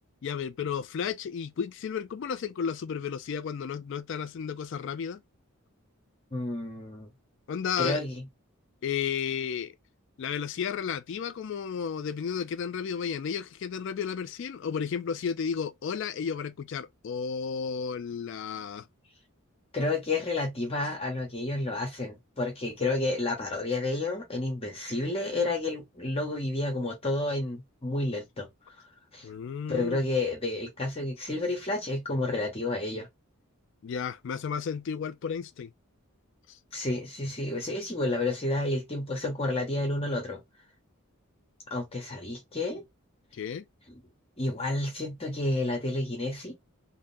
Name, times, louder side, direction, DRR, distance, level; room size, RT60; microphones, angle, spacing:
voice 1, 0.2-5.2 7.5-8.0 8.8-9.7 10.2-18.9 29.2-30.0 33.8-35.7 36.5-36.6 43.3-43.6, left 7 dB, 55° left, 0.3 m, -33 dB
voice 2, 6.3-7.1 7.8-8.2 19.7-28.5 29.1-29.3 29.7-33.1 36.7-40.4 41.7-42.8 44.4-46.5, left 2 dB, 25° left, 0.8 m, -30 dB
3.6 x 2.1 x 2.5 m
head